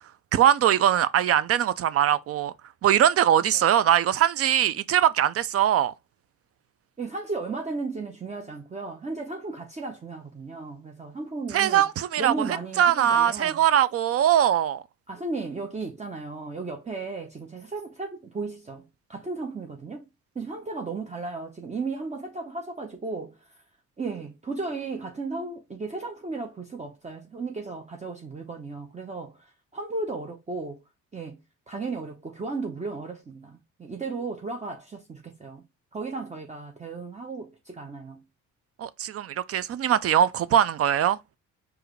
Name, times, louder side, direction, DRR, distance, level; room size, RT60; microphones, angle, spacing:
voice 1, 0.3-2.5 2.8-5.9 11.5-14.8 38.8-41.2, right 10 dB, 50° right, 0.4 m, -21 dB
voice 2, 7.0-11.8 12.2-13.6 15.1-20.0 20.3-23.4 24.0-30.8 31.1-31.4 31.7-35.6 35.9-38.2, right 3 dB, 25° right, 0.8 m, -35 dB
4.7 x 2.6 x 3.1 m
cardioid pair, 90°, 30 cm